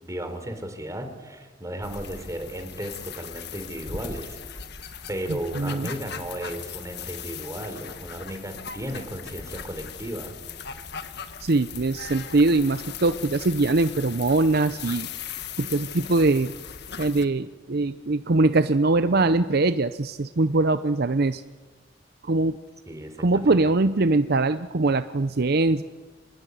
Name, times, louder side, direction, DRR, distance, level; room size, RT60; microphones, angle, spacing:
voice 1, 0.0-4.6 5.1-10.3 22.9-23.6, right 1 dB, 20° right, 6 dB, 3.7 m, -35 dB
sound 1, 1.8-17.3, left 7 dB, 60° left, 1.6 m, -39 dB
voice 2, 5.3-5.9 11.4-15.1 15.6-16.5 17.0-21.4 22.2-22.5 23.2-25.8, right 2 dB, 55° right, 11 dB, 0.7 m, -22 dB
25.5 x 20.0 x 9.5 m, 1.4 s
head